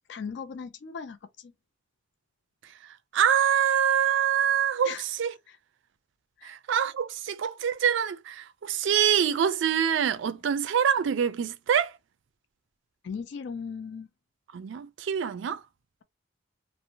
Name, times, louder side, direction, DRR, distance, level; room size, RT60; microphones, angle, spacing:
voice 1, 0.1-1.5 4.8-5.0 5.5-5.6 6.4-6.6 13.0-14.1, left 6 dB, 60° left, 0.3 m, -38 dB
voice 2, 2.6-5.3 6.4-12.0 14.5-15.6, right 8 dB, 65° right, 0.3 m, -25 dB
2.6 x 2.0 x 2.7 m
head